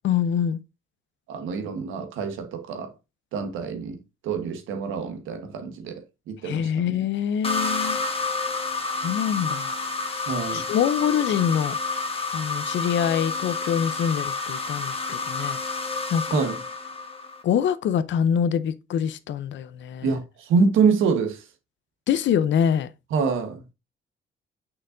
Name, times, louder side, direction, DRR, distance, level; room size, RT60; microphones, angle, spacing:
voice 1, 0.0-0.6 6.4-8.0 9.0-9.8 10.1-11.8 12.3-15.6 16.1-16.4 17.4-20.2 22.1-22.9, left 8 dB, 70° left, 0.6 m, -25 dB
voice 2, 1.3-2.9 3.3-7.0 10.3-10.6 16.3-16.6 20.0-21.4 23.1-23.6, right 5 dB, 85° right, 1.3 m, -26 dB
sound 1, 7.4-17.4, left 3 dB, 30° left, 1.4 m, -29 dB
6.5 x 5.7 x 2.6 m
cardioid pair, 90°, 20 cm